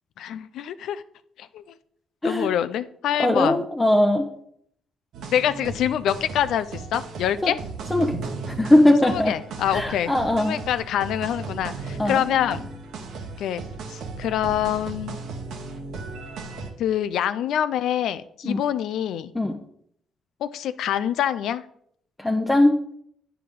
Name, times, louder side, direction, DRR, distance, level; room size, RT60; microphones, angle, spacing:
voice 1, 0.2-1.0 1.4-1.6 2.2-3.6 5.3-7.6 9.0-10.1 10.4-12.7 13.4-13.6 13.9-15.2 16.8-19.3 20.4-21.6, left 10 dB, 80° left, 13 dB, 0.4 m, -25 dB
voice 2, 3.2-4.2 7.4-7.5 7.9-9.3 9.7-10.6 12.0-12.2 18.4-18.6 19.3-19.6 22.2-22.8, left 1 dB, 15° left, 2 dB, 0.9 m, -20 dB
sound 1, 5.1-16.7, right 3 dB, 80° right, 1.3 m, -36 dB
9.8 x 4.8 x 5.4 m, 0.68 s
cardioid pair, 90°, 0 cm